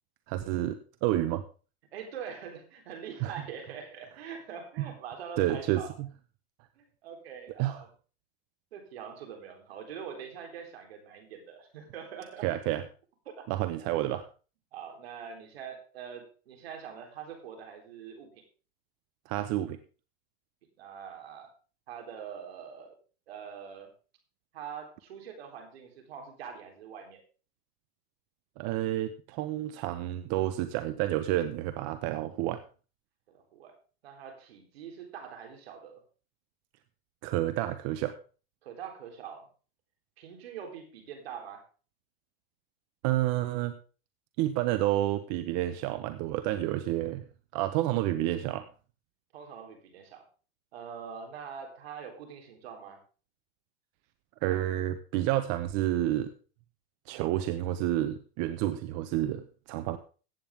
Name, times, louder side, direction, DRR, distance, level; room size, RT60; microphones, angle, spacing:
voice 1, 0.3-1.4 3.2-3.3 4.8-4.9 5.4-6.1 7.6-7.8 12.4-12.8 13.5-14.3 19.3-19.8 28.6-32.6 37.2-38.2 43.0-43.7 44.4-47.2 47.5-48.6 54.4-56.3 57.1-60.0, right 14 dB, 55° right, 10 dB, 1.0 m, -29 dB
voice 2, 1.9-5.9 6.8-7.9 8.7-12.5 13.3-13.5 14.7-18.3 20.8-21.5 21.9-23.0 23.3-23.9 24.5-27.2 33.3-33.7 34.0-36.0 38.6-39.5 40.2-41.6 49.3-50.2 50.7-53.0, right 7 dB, 85° right, 4 dB, 3.8 m, -44 dB
15.5 x 8.7 x 3.6 m, 0.36 s
hypercardioid pair, 110°, 30 cm